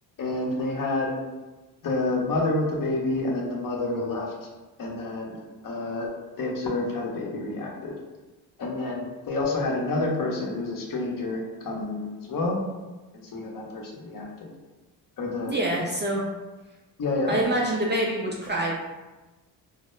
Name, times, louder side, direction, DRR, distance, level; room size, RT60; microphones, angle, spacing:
voice 1, 0.2-1.1 1.8-4.3 4.8-6.1 6.4-7.9 8.6-12.6 13.2-14.5 15.2-15.6 17.0-17.4, left 2 dB, 45° left, -1 dB, 0.7 m, -28 dB
voice 2, 15.5-16.3 17.3-18.8, right 1 dB, 25° right, -2 dB, 0.3 m, -26 dB
2.1 x 2.0 x 3.0 m, 1.2 s
supercardioid pair, 60°, 45 cm